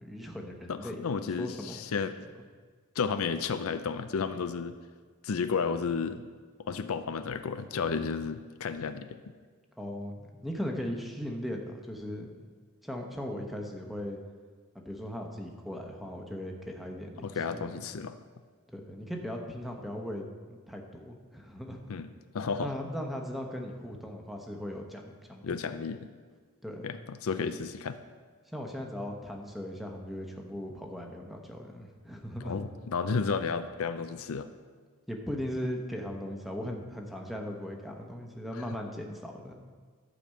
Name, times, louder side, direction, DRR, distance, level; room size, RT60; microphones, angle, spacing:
voice 1, 0.0-1.8 9.8-12.3 12.8-14.2 14.8-17.7 18.7-21.8 22.6-25.7 26.6-26.9 28.5-32.5 35.1-39.5, equal, ahead, 1 dB, 1.0 m, -38 dB
voice 2, 0.7-2.1 3.0-4.8 5.2-6.3 6.6-9.2 17.2-18.2 21.9-22.1 22.3-22.7 25.4-26.1 26.8-28.0 32.4-34.5 38.5-38.6, left 5 dB, 65° left, 10 dB, 0.5 m, -32 dB
12.0 x 5.1 x 7.6 m, 1.5 s
head